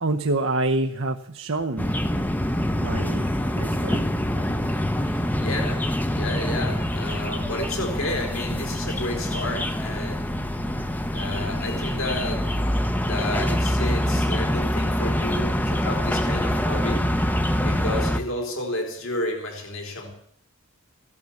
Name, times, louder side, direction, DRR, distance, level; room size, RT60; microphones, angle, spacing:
voice 1, 0.0-1.9 2.7-4.0, right 2 dB, 60° right, 4 dB, 0.9 m, -27 dB
sound 1, 1.8-18.2, equal, 10° left, 0.9 m, -25 dB
voice 2, 5.4-5.9 6.1-10.3 11.1-12.5 13.0-17.0 17.6-20.1, left 1 dB, 70° left, 2 dB, 3.8 m, -31 dB
16.0 x 12.5 x 7.1 m, 0.68 s
head